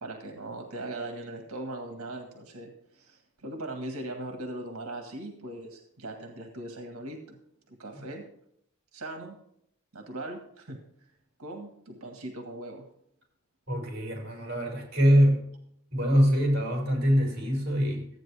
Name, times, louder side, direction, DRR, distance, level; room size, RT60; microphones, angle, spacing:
voice 1, 0.0-7.4 7.7-8.2 8.9-9.4 9.9-10.8 11.4-12.9, right 1 dB, 85° right, 4 dB, 1.8 m, -39 dB
voice 2, 13.7-15.4 15.9-18.1, equal, 50° right, -1 dB, 5.5 m, -24 dB
13.5 x 9.2 x 3.5 m, 0.71 s
head